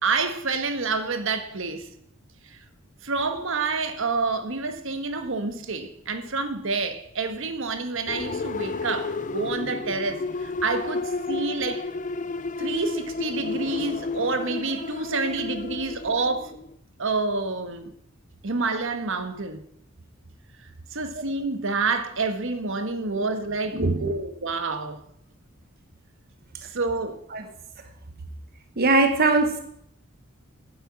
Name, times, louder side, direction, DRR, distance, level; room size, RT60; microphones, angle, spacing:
voice 1, 0.0-1.9 2.5-2.6 3.0-11.8 12.6-16.5 17.0-17.9 18.4-19.6 20.9-25.0 26.7-27.2, right 3 dB, 65° right, 1.3 m, -28 dB
sound 1, 8.1-16.8, left 3 dB, 35° left, 0.5 m, -32 dB
voice 2, 23.7-24.1 27.3-27.5 28.8-29.6, right 3 dB, 45° right, 1.0 m, -21 dB
10.5 x 7.9 x 8.7 m
head